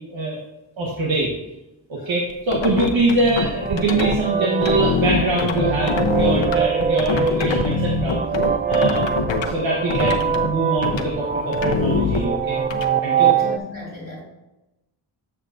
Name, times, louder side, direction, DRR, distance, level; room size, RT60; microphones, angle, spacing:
voice 1, 0.1-0.4 0.8-1.3 2.1-8.2 8.7-9.0 9.5-12.6 13.0-13.3, right 2 dB, 75° right, -3 dB, 1.3 m, -23 dB
sound 1, 2.3-4.2 4.6-9.5 9.9-10.5 10.8-11.1 11.5-12.8, left 4 dB, 70° left, 0.8 m, -24 dB
sound 2, 3.6-13.6, right 6 dB, 25° right, 0.3 m, -23 dB
voice 2, 13.3-14.2, left 3 dB, 30° left, -3 dB, 2.4 m, -36 dB
8.1 x 7.4 x 2.6 m, 0.99 s
cardioid pair, 60°, 46 cm